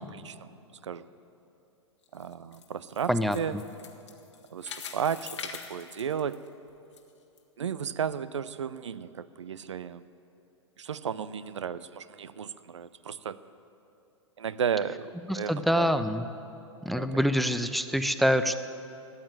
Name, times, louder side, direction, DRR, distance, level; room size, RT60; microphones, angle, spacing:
voice 1, 0.1-0.5 0.8-1.1 2.1-3.6 4.5-6.4 7.6-10.0 10.8-13.4 14.4-15.9 16.9-17.2, right 7 dB, 75° right, 16 dB, 0.5 m, -34 dB
sound 1, 2.0-7.0 7.4-7.5 8.1-8.2, left 6 dB, 70° left, 1.6 m, -43 dB
voice 2, 15.3-16.2 16.9-18.6, equal, ahead, 11 dB, 0.5 m, -25 dB
14.0 x 8.9 x 9.2 m, 2.8 s
figure-of-eight pair, 100°, 16 cm